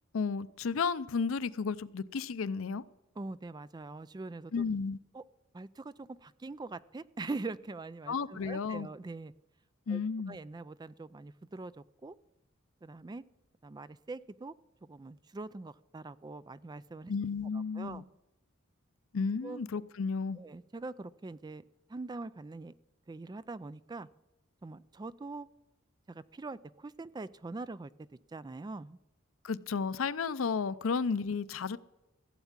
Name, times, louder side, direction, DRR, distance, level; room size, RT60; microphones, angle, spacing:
voice 1, 0.1-2.8 4.5-5.0 8.1-8.9 9.9-10.4 17.1-18.0 19.1-20.4 29.4-31.8, left 5 dB, 80° left, 0.5 m, -33 dB
voice 2, 3.2-4.5 5.1-5.2 5.5-9.3 9.9-10.0 10.3-12.2 12.8-13.2 13.6-14.5 14.8-17.1 17.5-18.0 19.4-19.6 20.3-21.6 21.9-22.7 23.1-24.1 24.6-25.5 26.1-27.9 28.3-29.0, right 3 dB, 20° right, 0.4 m, -43 dB
15.5 x 8.3 x 7.3 m
head